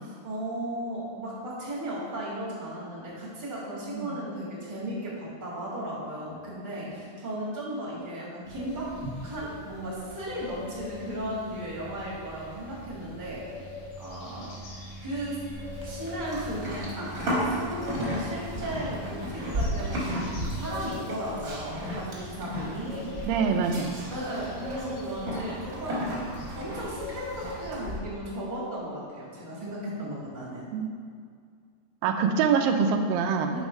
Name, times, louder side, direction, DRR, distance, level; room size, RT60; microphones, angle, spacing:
voice 1, 0.0-13.7 14.0-14.5 15.0-15.4 15.8-23.6 24.1-26.1 26.5-30.7 33.5-33.6, right 1 dB, 30° right, -7 dB, 0.9 m, -36 dB
sound 1, 8.5-27.7, left 1 dB, 70° left, 3.5 m, -42 dB
Livestock farm animals working animals, 15.5-28.0, equal, 45° right, 1.1 m, -34 dB
voice 2, 23.3-24.0 30.7-30.9 32.0-33.6, right 5 dB, 80° right, 5 dB, 2.2 m, -25 dB
8.6 x 4.0 x 5.2 m, 2.2 s
omnidirectional pair, 4.3 m